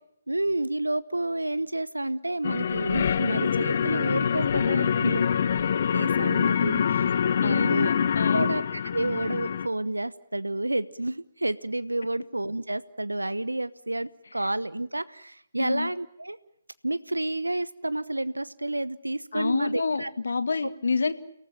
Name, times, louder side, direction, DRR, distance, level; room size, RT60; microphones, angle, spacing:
voice 1, 0.3-5.2 5.9-7.1 7.4-8.0 8.3-16.4 16.8-20.1, right 1 dB, 85° right, 16 dB, 1.0 m, -30 dB
sound 1, 2.4-9.7, left 7 dB, 45° left, 1.2 m, -25 dB
voice 2, 7.4-8.5 15.6-15.9 19.3-21.1, left 4 dB, 65° left, 12 dB, 1.9 m, -28 dB
30.0 x 18.5 x 9.1 m, 0.74 s
figure-of-eight pair, 140°, 0 cm